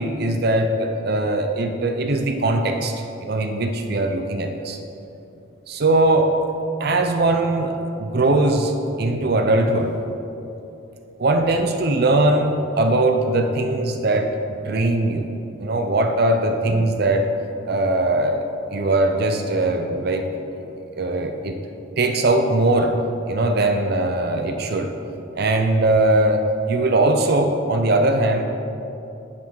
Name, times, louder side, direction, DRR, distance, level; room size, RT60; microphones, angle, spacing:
voice 1, 0.0-4.8 5.7-6.3 6.8-8.7 9.0-9.9 11.2-14.3 14.6-15.3 15.6-17.3 17.7-18.4 18.7-20.3 20.9-21.6 22.0-23.0 23.3-24.9 25.4-28.4, right 2 dB, 50° right, 5 dB, 0.6 m, -20 dB
10.5 x 6.0 x 4.7 m, 2.8 s
head